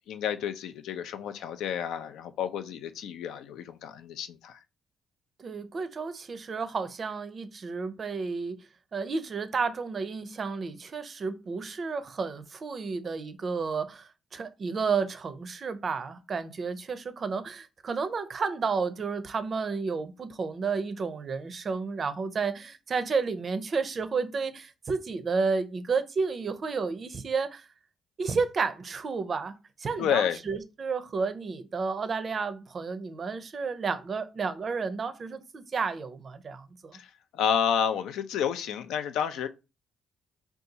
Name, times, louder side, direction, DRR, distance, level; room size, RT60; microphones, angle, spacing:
voice 1, 0.1-4.6 30.0-30.4 36.9-39.5, left 8 dB, 85° left, 0.4 m, -30 dB
voice 2, 5.4-8.6 8.9-27.7 28.2-37.0, right 4 dB, 45° right, 0.4 m, -31 dB
2.7 x 2.3 x 3.9 m
cardioid pair, 90°, 0 cm